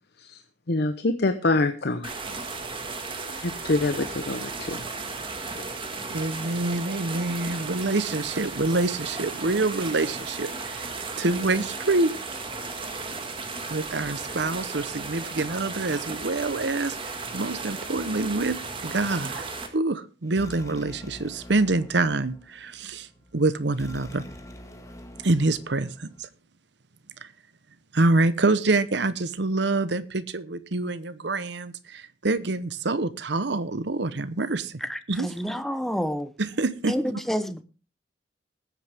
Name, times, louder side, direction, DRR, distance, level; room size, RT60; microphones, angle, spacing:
voice 1, 0.7-2.1 3.4-4.8, left 2 dB, 60° left, 0.9 m, -25 dB
sound 1, 2.0-19.7, right 4 dB, 30° right, 1.9 m, -35 dB
voice 2, 6.1-10.8 11.2-12.1 13.7-17.0 17.3-19.4 19.7-23.1 23.3-24.2 25.2-26.3 27.2-27.3 27.9-34.8 35.1-35.5 36.4-36.9, right 2 dB, 65° right, 0.9 m, -26 dB
sound 2, 20.2-26.2, equal, 15° left, 1.7 m, -45 dB
voice 3, 34.8-36.3 36.9-37.6, equal, ahead, 0.8 m, -29 dB
20.0 x 8.4 x 3.5 m
head